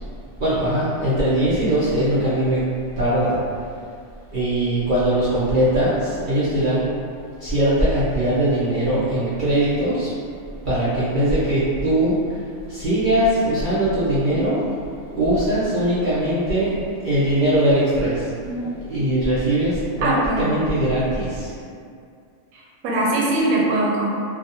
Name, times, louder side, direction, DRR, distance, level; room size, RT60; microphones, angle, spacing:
voice 1, 0.4-2.6 3.0-3.7 4.3-6.9 7.4-10.1 10.6-12.4 12.7-14.6 15.1-16.8 17.0-18.3 18.8-21.5, right 1 dB, 65° right, -11 dB, 0.5 m, -21 dB
voice 2, 13.7-14.6 18.4-18.7 20.0-20.7 21.5-21.6 22.5-24.1, right 2 dB, 80° right, -4 dB, 1.0 m, -23 dB
2.4 x 2.3 x 2.7 m, 2.3 s
omnidirectional pair, 1.4 m